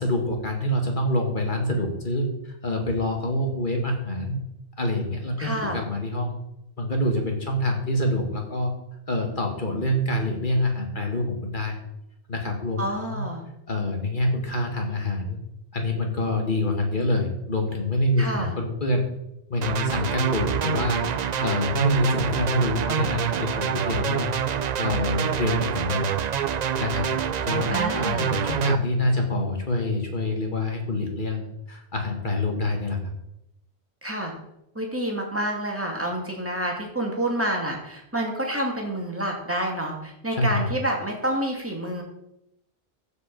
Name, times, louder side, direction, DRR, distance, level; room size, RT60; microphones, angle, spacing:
voice 1, 0.0-2.3 2.6-4.4 4.8-6.3 6.8-8.7 9.1-11.8 12.3-13.2 13.7-15.4 15.7-19.0 19.5-21.0 21.4-24.3 24.8-26.1 26.8-33.0 40.3-40.7, left 1 dB, 45° left, 2 dB, 2.1 m, -26 dB
voice 2, 5.4-5.8 12.8-13.4 18.2-18.5 27.7-28.3 34.0-34.3 34.7-42.0, right 1 dB, 10° right, 0 dB, 2.2 m, -28 dB
sound 1, 19.6-28.8, right 8 dB, 55° right, 0.5 m, -26 dB
14.5 x 5.4 x 5.3 m, 0.83 s
omnidirectional pair, 1.2 m